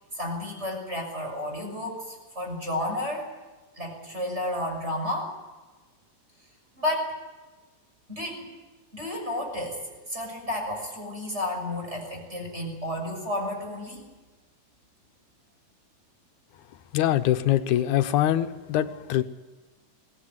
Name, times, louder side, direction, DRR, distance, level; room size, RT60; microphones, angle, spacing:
voice 1, 0.1-3.3 3.8-5.3 6.8-7.1 8.1-8.5 8.9-9.8 10.1-14.0, left 1 dB, 20° right, 1 dB, 6.6 m, -31 dB
voice 2, 16.9-19.2, left 12 dB, 85° left, 10 dB, 2.4 m, -23 dB
23.0 x 18.0 x 9.6 m, 1.2 s
omnidirectional pair, 3.4 m